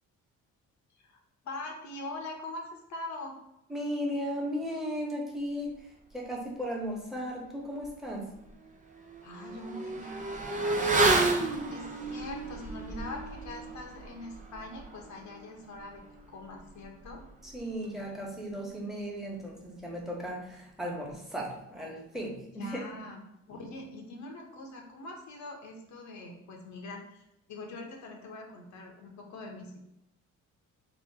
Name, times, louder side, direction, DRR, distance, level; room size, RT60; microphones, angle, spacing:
voice 1, 1.4-3.4 9.2-11.4 11.7-17.2 22.5-23.2 23.5-27.2 27.5-29.8, left 2 dB, 70° left, 1 dB, 1.0 m, -43 dB
voice 2, 3.7-5.8 6.1-8.3 17.4-22.8, equal, ahead, -2 dB, 1.3 m, -36 dB
Motorcycle / Accelerating revving vroom, 7.8-7.9 8.3-18.3 18.6-18.7, right 2 dB, 25° right, 0.6 m, -32 dB
3.6 x 3.0 x 3.7 m, 0.84 s
cardioid pair, 90°, 30 cm